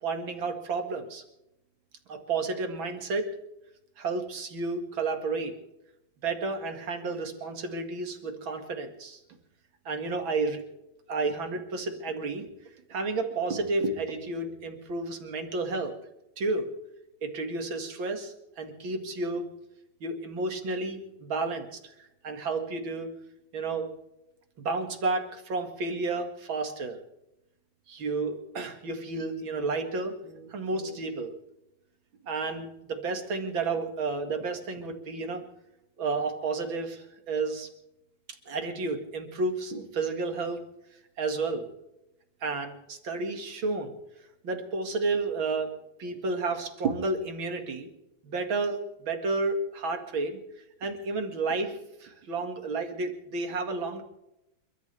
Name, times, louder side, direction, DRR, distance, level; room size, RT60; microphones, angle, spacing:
voice 1, 0.0-1.2 2.1-3.4 4.0-5.6 6.2-9.2 9.9-10.7 11.1-12.5 12.9-16.0 16.4-16.7 17.2-19.5 20.0-23.1 23.5-23.9 24.6-27.0 27.9-31.4 32.2-35.4 36.0-37.7 38.5-40.6 41.2-41.7 42.4-43.9 44.4-47.9 48.2-50.4 50.8-54.0, right 3 dB, 85° right, 5 dB, 2.8 m, -31 dB
29.5 x 13.0 x 3.4 m, 0.88 s
omnidirectional pair, 2.1 m